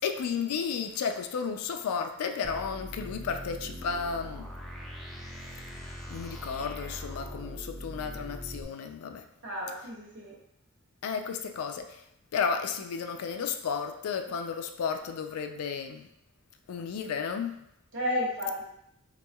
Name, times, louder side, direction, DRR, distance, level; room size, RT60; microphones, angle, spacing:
voice 1, 0.0-4.5 6.1-9.2 11.0-12.0 12.3-16.1 16.7-17.6, left 6 dB, 85° left, 7 dB, 0.3 m, -33 dB
sound 1, 2.4-8.6, equal, ahead, 0.3 m, -41 dB
voice 2, 9.4-10.3 17.9-18.7, left 1 dB, 55° right, -4 dB, 0.9 m, -32 dB
3.5 x 3.0 x 2.2 m, 0.76 s
head